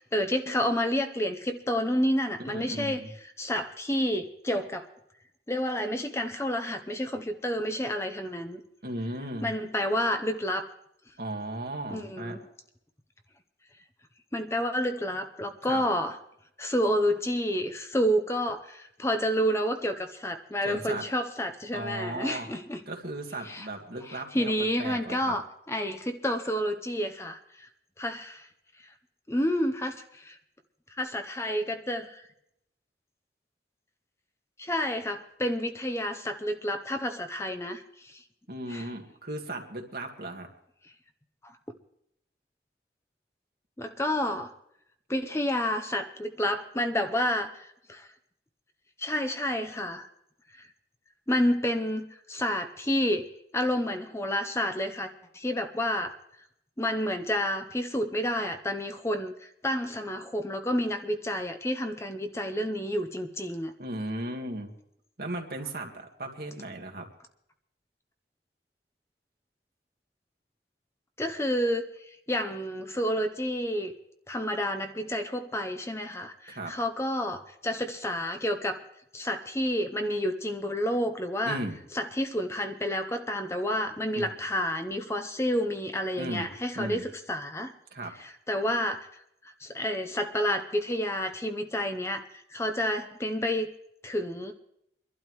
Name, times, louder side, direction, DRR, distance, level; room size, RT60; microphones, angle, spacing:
voice 1, 0.0-3.0 3.4-4.9 5.5-8.6 9.4-10.7 11.9-12.4 14.3-16.2 16.6-22.8 23.5-23.7 24.1-27.7 28.0-28.5 29.3-30.4 31.0-32.2 34.6-38.2 38.7-38.8 41.4-41.5 43.8-44.5 45.1-48.1 49.0-50.1 51.3-53.2 53.5-56.1 56.8-63.7 71.2-73.9 74.3-78.8 79.1-81.6 81.9-87.7 88.2-89.1 89.6-93.7 94.0-94.5, equal, 15° left, 6 dB, 0.7 m, -29 dB
voice 2, 2.5-3.1 8.8-9.5 11.2-12.4 15.6-15.8 20.6-21.1 21.7-22.5 22.9-25.4 38.5-40.5 63.8-64.7 65.2-67.1 76.5-76.7 81.5-81.8 84.1-84.4 86.2-86.5 86.7-87.1 87.9-88.1, right 1 dB, 55° right, 2 dB, 1.9 m, -36 dB
24.0 x 12.0 x 3.1 m, 0.76 s
head